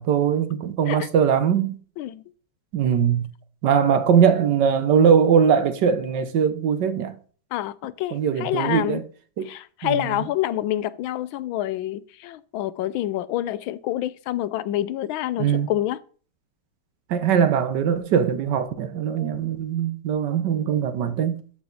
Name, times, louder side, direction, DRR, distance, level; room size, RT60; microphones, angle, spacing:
voice 1, 0.0-1.8 2.7-3.3 3.6-7.1 8.1-9.0 9.4-9.5 9.8-10.2 15.4-15.7 17.1-21.4, right 7 dB, 65° right, 1.4 m, -21 dB
voice 2, 7.5-9.0 9.5-16.0, left 13 dB, 85° left, 1.4 m, -27 dB
12.5 x 5.0 x 3.9 m
omnidirectional pair, 2.2 m